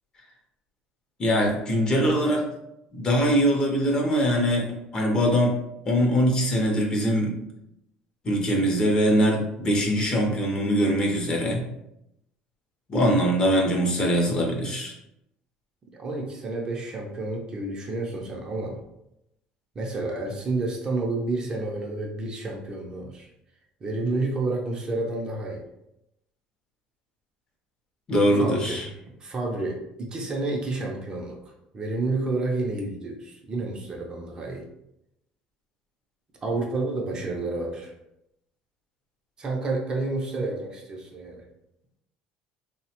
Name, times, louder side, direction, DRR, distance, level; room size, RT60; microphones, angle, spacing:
voice 1, 1.2-2.4 2.9-5.6 5.9-7.4 8.2-11.6 12.9-14.9 28.1-28.9, equal, 30° left, 0 dB, 0.6 m, -22 dB
voice 2, 15.9-18.8 19.8-23.3 23.8-25.6 28.3-28.9 29.2-31.4 31.7-34.7 36.4-37.9 39.4-41.4, right 2 dB, 25° right, 0 dB, 0.4 m, -30 dB
3.1 x 2.1 x 2.8 m, 0.82 s
cardioid pair, 145°, 3 cm